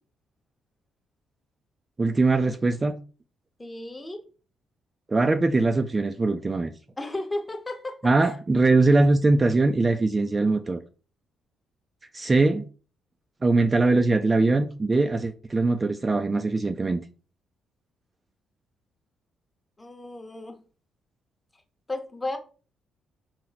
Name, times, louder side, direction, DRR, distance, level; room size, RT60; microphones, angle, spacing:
voice 1, 2.0-2.9 5.1-6.7 8.0-10.8 12.1-12.6 13.4-17.0, right 3 dB, 25° right, 0.3 m, -21 dB
voice 2, 3.6-4.2 7.0-8.4 19.8-20.6 21.9-22.4, left 2 dB, 15° left, 0.8 m, -34 dB
4.4 x 2.0 x 3.9 m
cardioid pair, 90°, 0 cm